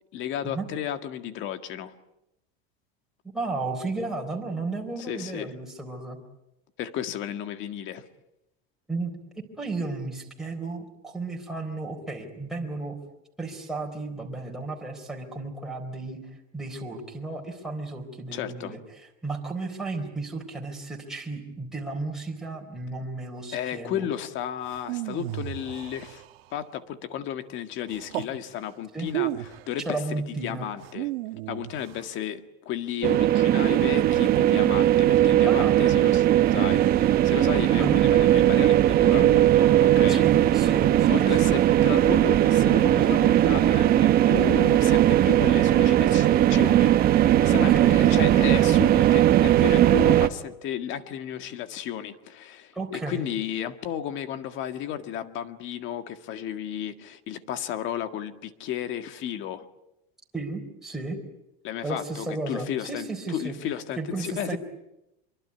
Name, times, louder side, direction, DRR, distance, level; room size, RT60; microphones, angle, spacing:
voice 1, 0.1-1.9 5.1-5.5 6.8-8.0 18.3-18.7 23.5-26.2 26.5-31.1 31.5-36.3 36.5-40.2 41.1-59.7 61.6-64.6, left 10 dB, 40° left, 9 dB, 1.8 m, -33 dB
voice 2, 3.3-6.2 8.9-9.1 9.6-13.0 13.4-16.2 16.5-18.8 19.2-24.1 28.9-29.1 29.9-30.7 35.5-35.8 37.8-38.0 40.1-41.6 47.7-48.0 52.7-53.2 60.3-61.2 61.8-63.5 64.0-64.6, right 3 dB, ahead, -1 dB, 4.0 m, -33 dB
sound 1, 24.6-26.6 27.9-28.4 29.0-29.7 30.8-32.1 33.6-34.8 36.4-37.2, right 16 dB, 80° right, 1.8 m, -35 dB
sound 2, 33.0-50.3, right 12 dB, 30° right, 1.1 m, -19 dB
25.0 x 24.0 x 9.6 m, 0.89 s
cardioid pair, 165°, 30 cm